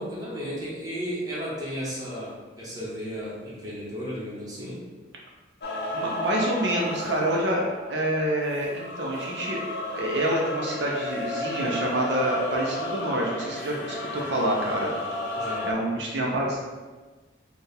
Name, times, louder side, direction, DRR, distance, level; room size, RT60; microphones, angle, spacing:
voice 1, 0.0-4.8 15.3-15.7, equal, 20° right, -7 dB, 1.0 m, -34 dB
sound 1, 5.6-15.7, left 1 dB, 60° left, 0.6 m, -33 dB
voice 2, 5.9-9.6 9.9-14.9 15.7-16.6, right 1 dB, 75° right, -2 dB, 0.6 m, -27 dB
4.4 x 2.4 x 3.4 m, 1.3 s
head